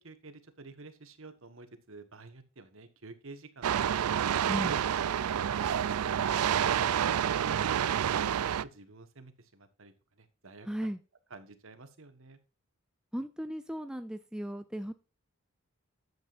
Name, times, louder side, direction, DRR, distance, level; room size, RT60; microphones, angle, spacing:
voice 1, 0.0-6.3 6.7-10.9 11.3-12.4, right 3 dB, 60° right, 9 dB, 1.4 m, -50 dB
sound 1, 3.6-8.6, right 9 dB, 85° right, 0.4 m, -28 dB
voice 2, 10.7-11.0 13.1-14.9, equal, 5° right, 9 dB, 0.4 m, -36 dB
11.0 x 7.9 x 2.6 m, 0.31 s
head